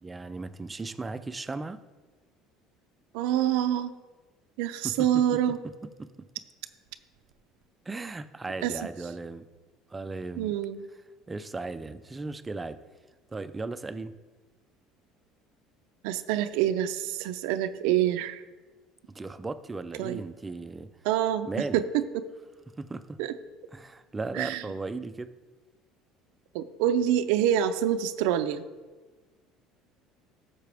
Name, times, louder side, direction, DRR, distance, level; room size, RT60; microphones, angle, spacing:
voice 1, 0.0-1.8 4.8-5.6 6.0-6.1 7.9-9.4 9.9-10.6 11.3-12.8 13.3-14.1 19.1-20.9 21.5-21.8 22.8-23.2 23.7-25.3, right 3 dB, 15° right, 11 dB, 0.5 m, -36 dB
voice 2, 3.1-3.9 4.6-5.6 8.6-8.7 10.4-10.8 16.0-18.4 20.0-20.2 21.0-21.5 21.7-22.3 23.2-23.3 24.3-24.6 26.5-28.6, right 11 dB, 85° right, 9 dB, 0.5 m, -26 dB
13.5 x 6.6 x 3.5 m, 1.3 s
cardioid pair, 125°, 0 cm